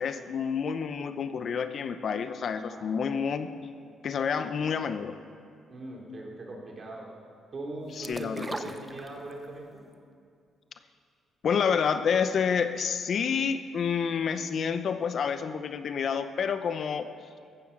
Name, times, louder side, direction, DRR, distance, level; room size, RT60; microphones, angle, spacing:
voice 1, 0.0-3.5 4.0-5.2 7.9-8.7 11.4-17.1, left 6 dB, 55° left, 10 dB, 0.8 m, -29 dB
voice 2, 5.7-7.1 7.5-9.9, right 2 dB, 40° right, -1 dB, 3.5 m, -40 dB
sound 1, 8.0-9.6 9.9-10.0, right 2 dB, 20° right, 0.9 m, -38 dB
15.5 x 14.0 x 6.1 m, 2.3 s
cardioid pair, 90°, 0 cm